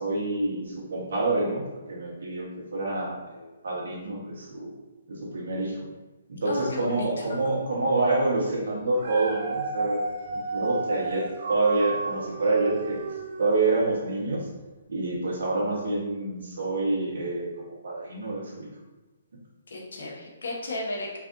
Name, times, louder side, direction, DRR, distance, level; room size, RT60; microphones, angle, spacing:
voice 1, 0.0-4.7 5.1-5.8 6.3-10.0 10.3-13.0 13.4-14.4 14.9-18.7, right 2 dB, 65° right, -3 dB, 1.1 m, -27 dB
voice 2, 6.5-7.1 19.7-21.2, left 2 dB, 90° left, -2 dB, 1.0 m, -33 dB
Dog, 8.8-14.1 14.7-14.8, right 3 dB, 40° right, 0.4 m, -33 dB
3.3 x 2.4 x 3.7 m, 1.2 s
hypercardioid pair, 180°, 0 cm